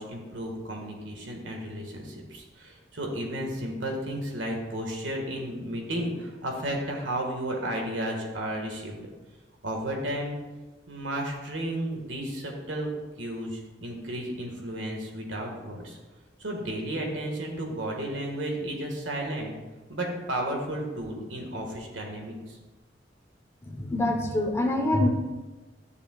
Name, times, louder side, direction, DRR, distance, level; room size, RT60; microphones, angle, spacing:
voice 1, 0.0-9.1 9.6-10.3 10.9-12.9 13.2-16.0 16.4-19.5 19.9-22.6, right 1 dB, 85° right, 1 dB, 1.7 m, -33 dB
voice 2, 23.6-25.1, left 1 dB, 15° left, 2 dB, 0.9 m, -25 dB
13.0 x 6.7 x 2.4 m, 1.2 s
head